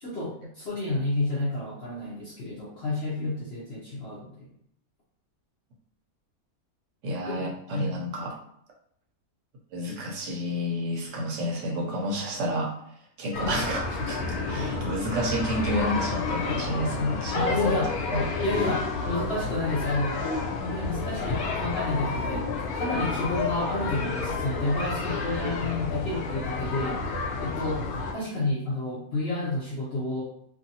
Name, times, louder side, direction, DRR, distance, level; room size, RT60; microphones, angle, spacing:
voice 1, 0.0-4.5 7.3-8.0 17.3-17.9 18.4-20.2 20.6-27.0 27.4-27.9 28.1-30.2, left 2 dB, 55° left, -6 dB, 0.8 m, -30 dB
voice 2, 7.0-8.4 9.7-12.7 13.2-17.9 18.1-18.3, equal, 65° right, -1 dB, 0.9 m, -30 dB
sound 1, 13.3-28.1, left 4 dB, 80° left, 1.1 m, -30 dB
2.6 x 2.6 x 2.7 m, 0.70 s
omnidirectional pair, 1.5 m